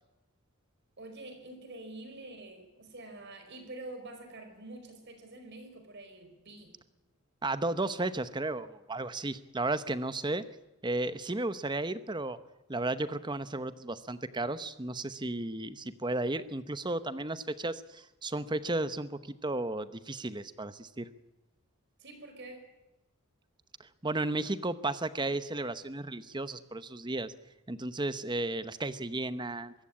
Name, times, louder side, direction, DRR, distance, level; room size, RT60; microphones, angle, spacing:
voice 1, 1.0-6.7 22.0-22.6, right 2 dB, 50° right, 7 dB, 4.9 m, -46 dB
voice 2, 7.4-10.4 10.8-12.4 12.7-21.1 23.8-27.3 27.7-29.7, right 2 dB, 20° right, 13 dB, 0.8 m, -34 dB
23.5 x 15.0 x 8.7 m, 1.0 s
head